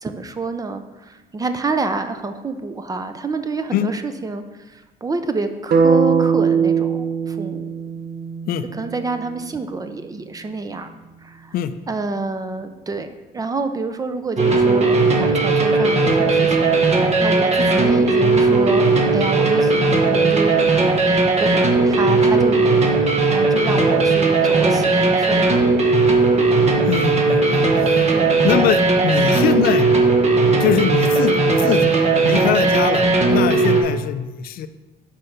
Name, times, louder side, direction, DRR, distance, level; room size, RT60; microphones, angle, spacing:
voice 1, 0.0-7.7 8.7-10.9 11.2-11.5 11.9-13.1 13.3-22.9 23.3-25.6 28.1-28.3, right 3 dB, 20° right, 8 dB, 0.5 m, -28 dB
sound 1, 5.7-9.8, right 6 dB, 70° right, 0.7 m, -20 dB
sound 2, 14.4-33.8, right 3 dB, 40° right, 1.0 m, -17 dB
voice 2, 26.9-28.0 28.4-29.9 30.6-34.7, left 9 dB, 65° left, 12 dB, 0.4 m, -22 dB
5.6 x 4.5 x 5.4 m, 1.1 s
cardioid pair, 110°, 17 cm